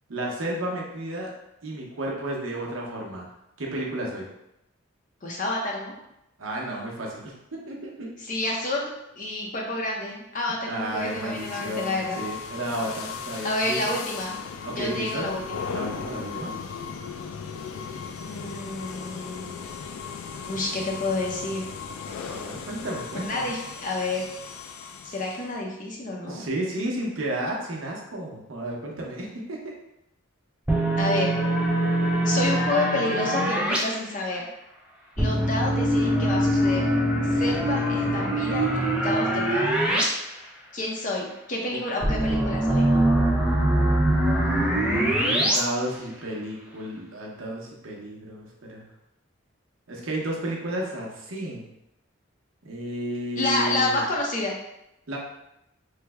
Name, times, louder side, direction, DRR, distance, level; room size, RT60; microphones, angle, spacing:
voice 1, 0.1-1.3 1.6-3.3 3.6-4.3 6.4-8.1 10.6-13.9 14.6-15.3 15.7-16.5 22.3-23.5 26.3-29.6 41.7-41.8 44.1-48.9 49.9-51.7 52.6-54.0 55.1-55.2, right 1 dB, 70° right, -2 dB, 0.7 m, -32 dB
voice 2, 5.2-5.9 8.2-12.2 13.4-14.3 14.8-15.6 18.3-19.6 20.4-21.7 23.1-24.3 25.0-26.4 31.0-31.4 32.2-34.5 35.2-36.9 37.3-38.7 39.0-39.8 40.7-43.0 53.4-54.5, left 2 dB, 40° left, -1 dB, 0.6 m, -29 dB
sound 1, 10.8-25.6, left 6 dB, 80° left, 0.3 m, -37 dB
sound 2, 30.7-33.8 35.2-40.0 40.4-40.5 42.0-45.6, right 1 dB, 5° right, 0.4 m, -23 dB
3.2 x 2.1 x 3.3 m, 0.85 s
head